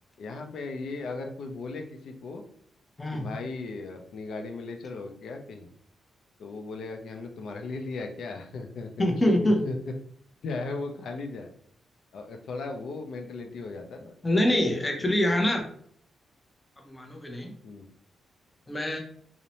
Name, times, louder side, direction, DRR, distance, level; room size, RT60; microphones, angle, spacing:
voice 1, 0.2-2.4 3.1-5.7 6.4-9.1 9.6-9.8 10.4-11.5 12.1-14.1 15.0-15.5 17.6-17.9, left 3 dB, 75° left, 3 dB, 0.4 m, -37 dB
voice 2, 9.0-9.6 14.2-15.6 16.9-17.5 18.7-19.0, left 1 dB, 20° left, 1 dB, 0.6 m, -24 dB
2.6 x 2.0 x 2.9 m, 0.62 s
cardioid pair, 100°, 0 cm